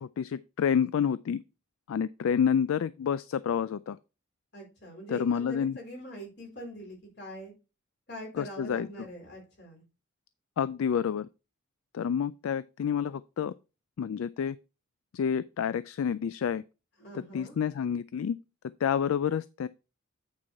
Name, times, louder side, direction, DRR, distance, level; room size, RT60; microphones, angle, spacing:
voice 1, 0.0-1.4 1.9-4.0 5.1-5.8 8.4-9.1 10.6-11.3 11.9-13.5 14.0-14.6 15.1-16.6 17.1-18.4 18.8-19.7, left 7 dB, 80° left, 0.3 m, -29 dB
voice 2, 4.5-7.5 8.1-9.8 17.0-17.5, equal, 55° left, 4.3 m, -43 dB
8.7 x 4.7 x 4.1 m
head